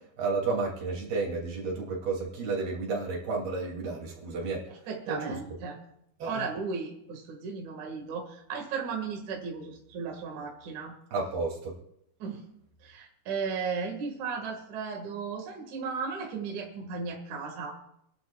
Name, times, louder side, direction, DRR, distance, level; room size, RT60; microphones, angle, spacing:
voice 1, 0.2-4.6 5.1-5.4 6.2-6.4 11.1-11.7, right 3 dB, 80° right, -1 dB, 4.6 m, -31 dB
voice 2, 4.7-5.8 6.2-11.0 12.2-12.4 12.8-17.8, right 5 dB, 55° right, 0 dB, 3.1 m, -35 dB
29.0 x 11.5 x 2.4 m, 0.78 s
omnidirectional pair, 4.3 m